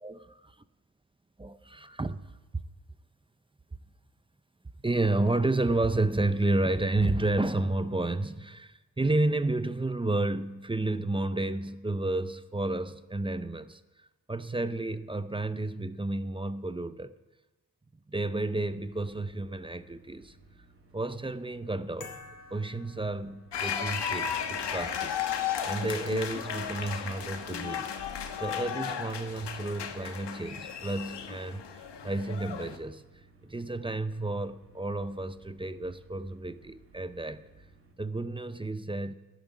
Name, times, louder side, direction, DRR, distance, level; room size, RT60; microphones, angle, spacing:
voice 1, 0.0-0.4 1.4-2.3 4.8-13.8 14.3-17.1 18.1-20.4 20.9-22.2 22.5-25.2 25.6-27.9 28.4-33.1 33.4-37.4 38.0-39.1, right 2 dB, 15° right, 0.5 m, -31 dB
sound 1, 18.7-37.9, right 3 dB, 30° right, 2.2 m, -59 dB
sound 2, 22.0-23.9, left 4 dB, 45° left, 2.2 m, -49 dB
sound 3, 23.5-32.8, left 8 dB, 70° left, 1.4 m, -35 dB
13.5 x 9.1 x 9.0 m
wide cardioid pair, 115°, 43 cm